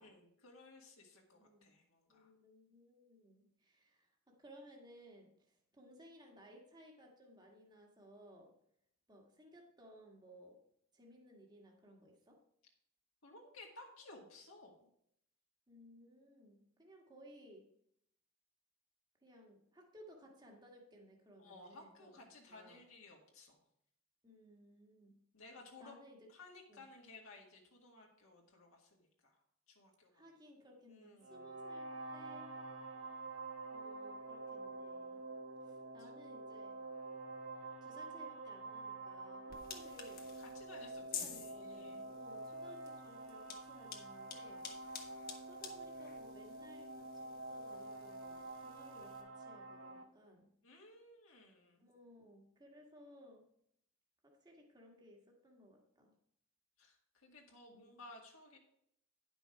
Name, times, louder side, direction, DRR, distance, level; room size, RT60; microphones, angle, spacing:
voice 1, 0.0-2.3 13.2-14.7 21.4-23.6 25.3-26.0 26.3-29.4 29.7-30.2 30.9-31.5 36.0-36.1 40.4-42.0 50.6-51.9 56.8-58.6, left 2 dB, 75° left, 0 dB, 2.0 m, -57 dB
voice 2, 1.3-1.7 2.1-8.5 9.1-10.6 10.9-12.4 15.7-17.7 19.2-22.2 22.5-22.8 24.2-25.2 25.8-26.3 26.7-26.9 30.1-32.5 33.7-35.3 35.6-36.8 37.8-40.3 41.0-45.1 45.5-50.5 51.8-53.5 54.2-56.1 57.7-58.0, equal, 20° right, 0 dB, 1.5 m, -60 dB
sound 1, 31.2-50.0, right 2 dB, 80° right, 1.2 m, -48 dB
sound 2, 39.5-49.2, left 7 dB, 45° left, 1.4 m, -52 dB
10.0 x 6.2 x 4.7 m, 0.72 s
head